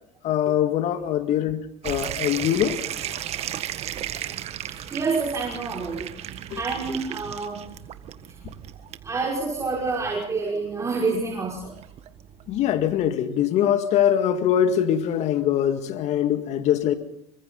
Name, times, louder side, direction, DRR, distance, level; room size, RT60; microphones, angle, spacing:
voice 1, 0.2-2.8 6.5-6.6 12.5-16.9, left 10 dB, 50° left, 2.1 m, -23 dB
sound 1, 1.8-13.1, right 11 dB, 45° right, 1.6 m, -36 dB
voice 2, 4.9-6.1 6.5-7.6 9.0-11.8, right 4 dB, 20° right, 5.7 m, -28 dB
27.5 x 24.5 x 4.0 m
hypercardioid pair, 85°, 14 cm